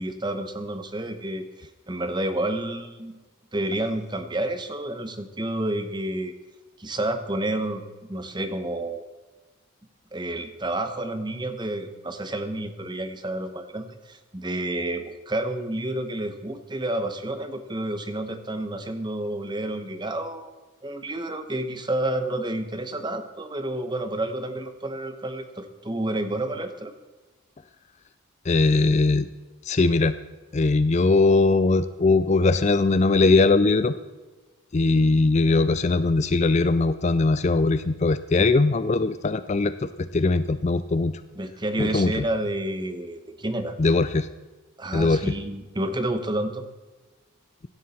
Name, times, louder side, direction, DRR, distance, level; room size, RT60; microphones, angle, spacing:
voice 1, 0.0-3.1 3.5-6.3 6.8-7.8 8.1-9.0 10.1-20.5 20.8-26.9 41.4-43.8 44.8-46.6, right 1 dB, 20° right, 8 dB, 1.0 m, -30 dB
voice 2, 28.5-29.3 29.7-30.2 30.5-33.9 34.7-41.2 41.8-42.1 43.8-44.3 44.9-45.2, left 3 dB, 30° left, 13 dB, 0.4 m, -20 dB
17.0 x 11.5 x 4.3 m, 1.2 s
head